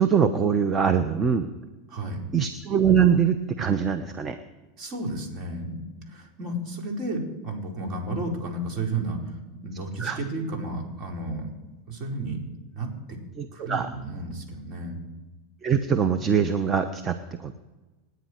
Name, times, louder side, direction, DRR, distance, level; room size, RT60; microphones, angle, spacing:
voice 1, 0.0-1.5 2.3-4.4 10.0-10.2 13.4-13.9 15.6-17.6, right 7 dB, 25° right, 9 dB, 1.1 m, -23 dB
voice 2, 1.9-2.2 4.8-9.2 9.5-11.5 11.9-12.4 12.7-13.2 13.5-15.0, right 2 dB, 45° right, 0 dB, 4.8 m, -32 dB
27.5 x 9.6 x 4.7 m, 1.2 s
hypercardioid pair, 95°, 0 cm